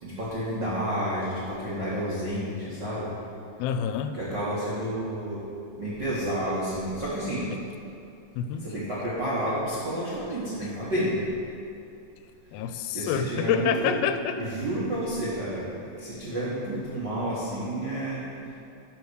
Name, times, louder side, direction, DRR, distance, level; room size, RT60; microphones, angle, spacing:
voice 1, 0.0-3.1 4.1-5.4 5.8-7.4 8.6-11.2 12.9-14.0 14.3-15.7 16.0-18.2, right 1 dB, 50° right, -10 dB, 1.3 m, -30 dB
voice 2, 3.6-4.2 7.5-7.6 8.4-8.6 12.5-14.4, left 8 dB, 90° left, 9 dB, 2.5 m, -27 dB
11.5 x 4.2 x 6.4 m, 2.6 s
omnidirectional pair, 4.2 m